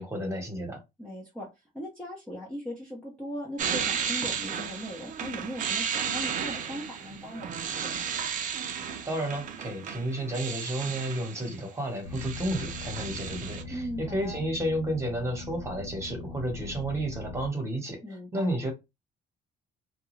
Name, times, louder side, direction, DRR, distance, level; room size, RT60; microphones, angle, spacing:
voice 1, 0.0-0.8 9.0-18.0 18.3-18.7, right 1 dB, 15° right, 1.2 m, -31 dB
voice 2, 1.0-1.5 1.7-8.1 13.7-14.4 18.0-18.5, equal, 5° left, 0.8 m, -39 dB
sound 1, 3.6-11.6 11.9-13.6, right 7 dB, 50° right, 0.5 m, -34 dB
sound 2, 12.0-17.5, left 3 dB, 85° left, 0.9 m, -41 dB
2.3 x 2.2 x 3.1 m
cardioid pair, 110°, 17 cm